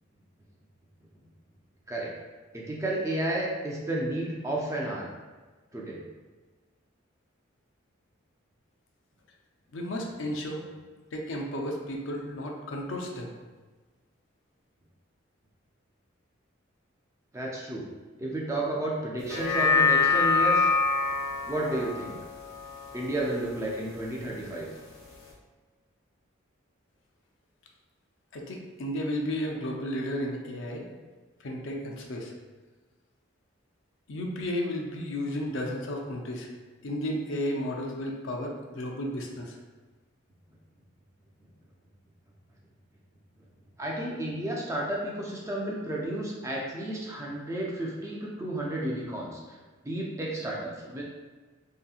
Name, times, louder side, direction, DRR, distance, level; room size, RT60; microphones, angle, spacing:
voice 1, 2.5-5.1 5.7-6.0 17.3-17.8 18.2-20.7 21.5-22.2 22.9-24.7 43.8-49.4 49.8-51.0, right 1 dB, 15° right, -3 dB, 0.3 m, -32 dB
voice 2, 9.7-10.6 11.1-13.3 28.3-30.8 31.4-32.3 34.1-36.5 36.8-39.6, left 1 dB, 70° left, 1 dB, 0.4 m, -33 dB
sound 1, 19.2-23.8 24.2-24.3, left 4 dB, 90° left, 0.9 m, -26 dB
2.7 x 2.6 x 2.3 m, 1.3 s
head